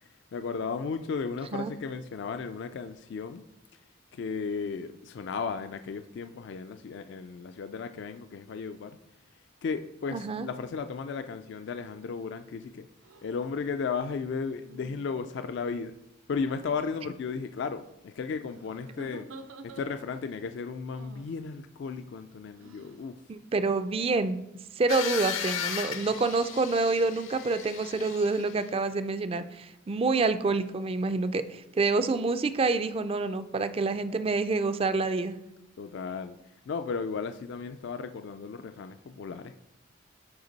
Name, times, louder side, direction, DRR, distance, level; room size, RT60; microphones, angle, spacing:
voice 1, 0.0-3.4 4.1-9.0 9.6-12.9 13.2-16.0 16.3-19.3 19.6-23.2 35.8-36.4 36.7-39.6, left 5 dB, 60° left, 0.3 m, -35 dB
voice 2, 10.1-10.5 23.3-24.4 24.8-35.4, right 3 dB, 30° right, 0.3 m, -27 dB
sound 1, 13.0-13.3 14.6-15.5 16.6-17.1 18.5-20.2 20.9-21.4 22.6-23.1, right 3 dB, 85° right, 0.6 m, -49 dB
sound 2, 24.9-28.7, left 7 dB, 85° left, 0.9 m, -36 dB
7.9 x 4.4 x 4.0 m
head